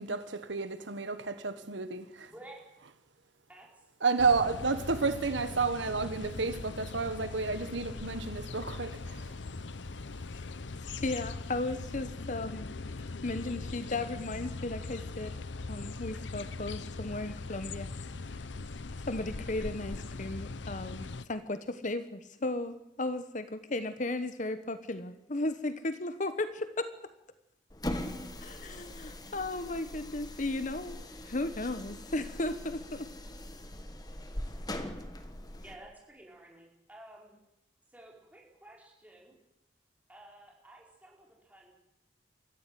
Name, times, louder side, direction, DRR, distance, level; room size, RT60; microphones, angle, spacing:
voice 1, 0.0-2.3 4.0-9.4, right 4 dB, 75° right, 11 dB, 1.4 m, -31 dB
voice 2, 2.3-2.7 3.5-3.9 35.6-37.4 37.9-39.3 40.1-41.7, right 1 dB, 10° right, -2 dB, 5.0 m, -53 dB
sound 1, 4.2-21.3, left 3 dB, 75° left, 0.8 m, -41 dB
voice 3, 11.0-12.7 13.2-15.3 15.7-17.9 19.0-26.9 28.4-31.0 31.2-33.1, left 2 dB, 40° left, 11 dB, 1.1 m, -35 dB
sound 2, 27.7-35.8, left 1 dB, 20° left, 1.5 m, -41 dB
23.5 x 14.5 x 9.3 m, 0.89 s
head